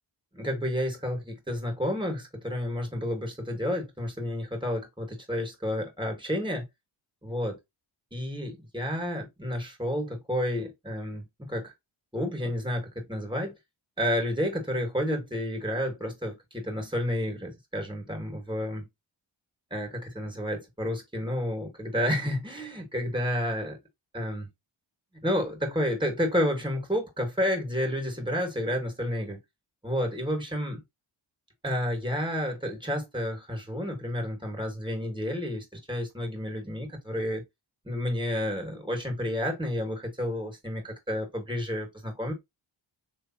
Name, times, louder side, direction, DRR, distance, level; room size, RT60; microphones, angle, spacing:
voice 1, 0.3-6.6 7.2-7.6 8.1-11.7 12.1-13.5 14.0-18.8 19.7-23.8 24.1-24.5 25.2-29.4 29.8-30.8 31.6-37.4 37.9-42.3, equal, 10° right, 2.2 m, -30 dB
3.4 x 3.3 x 2.9 m
cardioid pair, 50°, 47 cm